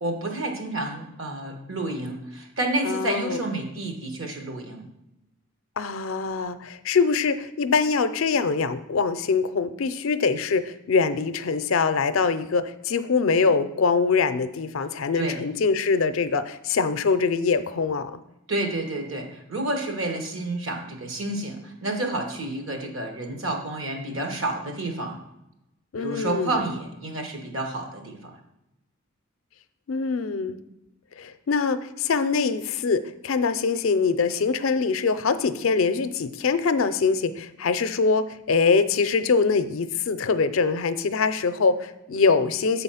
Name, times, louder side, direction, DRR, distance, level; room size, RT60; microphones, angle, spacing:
voice 1, 0.0-4.9 15.1-15.4 18.5-25.2 26.0-28.3, right 2 dB, 70° right, 3 dB, 1.3 m, -30 dB
voice 2, 2.8-3.4 5.8-18.2 25.9-26.6 29.9-30.6 31.2-42.8, left 4 dB, 70° left, 12 dB, 0.5 m, -23 dB
7.5 x 4.0 x 5.6 m, 0.89 s
head